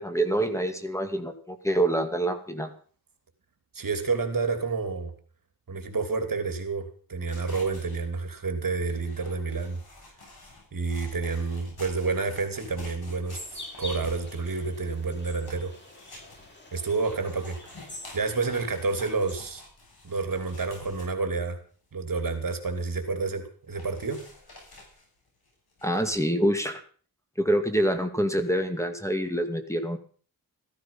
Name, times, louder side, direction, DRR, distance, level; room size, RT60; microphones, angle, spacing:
voice 1, 0.0-2.7 25.8-26.8 27.4-30.0, right 1 dB, 10° left, 6 dB, 2.2 m, -26 dB
voice 2, 3.7-5.1 5.7-9.8 10.7-15.7 16.7-17.6 18.1-19.6 20.0-21.6 21.9-24.2, right 4 dB, 65° right, 7 dB, 2.8 m, -29 dB
sound 1, 7.2-21.4 21.8-21.9 22.2-23.2 23.7-26.3, left 2 dB, 90° left, 7.8 m, -50 dB
sound 2, 13.3-19.3, left 1 dB, 30° left, 5.7 m, -45 dB
15.0 x 14.5 x 5.5 m, 0.43 s
wide cardioid pair, 110°, 36 cm